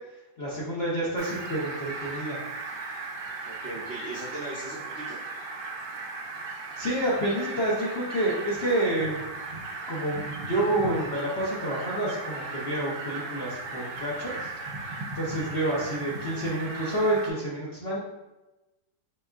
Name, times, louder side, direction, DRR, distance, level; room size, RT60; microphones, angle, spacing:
voice 1, 0.4-2.4 6.8-9.2 9.9-14.5 14.8-18.0, right 1 dB, 50° left, -7 dB, 0.7 m, -29 dB
Fowl, 1.2-17.3, right 3 dB, 70° right, 1.4 m, -37 dB
voice 2, 3.4-5.2, right 2 dB, 55° right, -8 dB, 0.7 m, -38 dB
5.2 x 3.5 x 2.4 m, 1.0 s
omnidirectional pair, 2.0 m